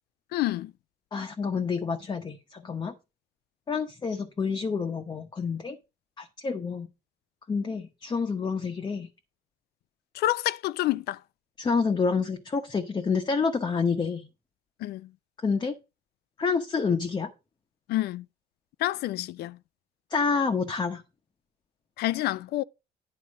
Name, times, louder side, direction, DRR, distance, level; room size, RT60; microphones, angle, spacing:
voice 1, 0.3-0.7 10.1-11.2 14.8-15.1 17.9-18.2 18.8-19.6 22.0-22.6, left 15 dB, 70° left, 0.4 m, -28 dB
voice 2, 1.1-2.9 3.7-5.8 6.2-6.9 7.5-9.1 11.6-14.3 15.4-15.7 16.4-17.3 20.1-21.0, left 5 dB, 25° left, 0.9 m, -28 dB
9.5 x 4.1 x 6.3 m
cardioid pair, 110°, 17 cm